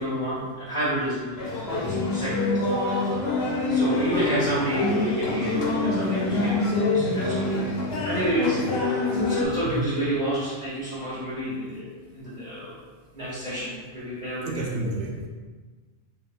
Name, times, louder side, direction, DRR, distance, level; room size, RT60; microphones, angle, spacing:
voice 1, 0.0-2.6 3.0-3.1 3.7-7.6 8.0-8.6 9.1-12.7 13.1-14.6, right 1 dB, 45° right, -11 dB, 1.4 m, -30 dB
sound 1, 1.4-9.5, left 2 dB, 70° left, 0.8 m, -25 dB
voice 2, 9.6-9.9 14.4-15.3, right 2 dB, 65° right, 0 dB, 0.7 m, -30 dB
3.4 x 2.7 x 2.4 m, 1.4 s
omnidirectional pair, 1.1 m